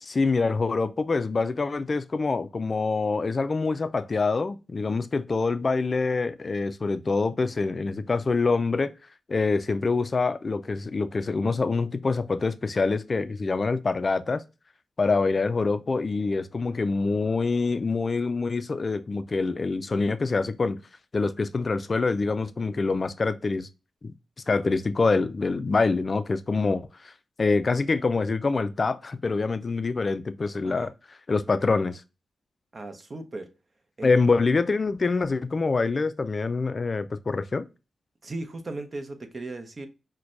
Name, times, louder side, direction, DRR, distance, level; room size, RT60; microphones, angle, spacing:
voice 1, 0.0-8.9 9.3-14.4 15.0-20.8 21.1-23.7 24.0-24.1 24.5-27.1 27.4-30.9 31.3-32.0 34.0-37.7, left 4 dB, 45° left, 0.3 m, -25 dB
voice 2, 32.7-33.5 34.0-34.1 38.2-39.9, right 2 dB, 45° right, 0.8 m, -37 dB
5.9 x 2.2 x 2.5 m
cardioid pair, 60°, 0 cm